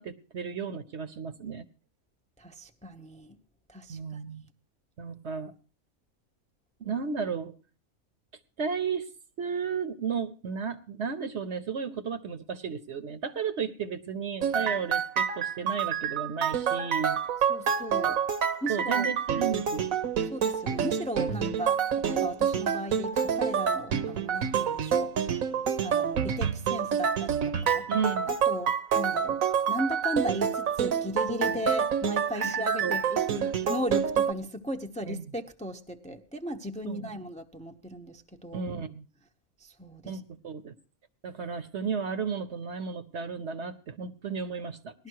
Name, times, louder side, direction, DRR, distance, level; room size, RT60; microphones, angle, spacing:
voice 1, 0.0-1.7 3.9-4.4 5.0-5.5 6.8-7.5 8.6-9.1 9.4-17.2 18.7-19.9 21.4-21.6 27.9-28.3 31.5-31.6 32.3-33.0 35.0-35.2 36.8-37.1 38.5-39.0 40.1-40.7 41.2-44.9, right 6 dB, 55° right, 10 dB, 1.1 m, -33 dB
voice 2, 2.4-3.4 3.7-4.2 17.5-18.2 18.6-19.1 20.3-21.8 22.1-25.4 25.8-27.9 28.3-29.4 29.7-38.6 39.6-40.2 45.0-45.1, equal, 5° left, 5 dB, 0.7 m, -36 dB
sound 1, 14.4-34.3, right 7 dB, 70° right, 1.3 m, -28 dB
19.0 x 12.0 x 4.6 m, 0.37 s
omnidirectional pair, 1.5 m